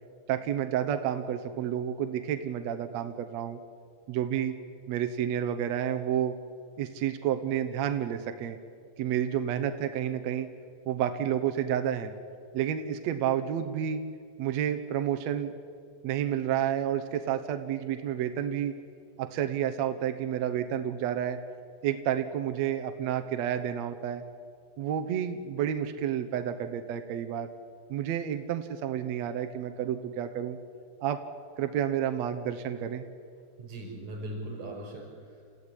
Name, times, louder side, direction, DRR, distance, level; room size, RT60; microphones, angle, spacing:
voice 1, 0.3-3.6 4.1-4.5 4.9-6.4 6.8-8.6 9.0-10.5 10.9-12.1 12.5-14.0 14.4-15.5 16.0-18.7 19.2-21.4 21.8-24.2 24.8-27.5 27.9-30.6 31.0-31.2 31.6-33.0, right 10 dB, 70° right, 7 dB, 1.7 m, -30 dB
voice 2, 33.6-35.4, right 1 dB, 50° right, 0 dB, 7.9 m, -39 dB
28.5 x 15.0 x 9.9 m, 2.1 s
omnidirectional pair, 4.2 m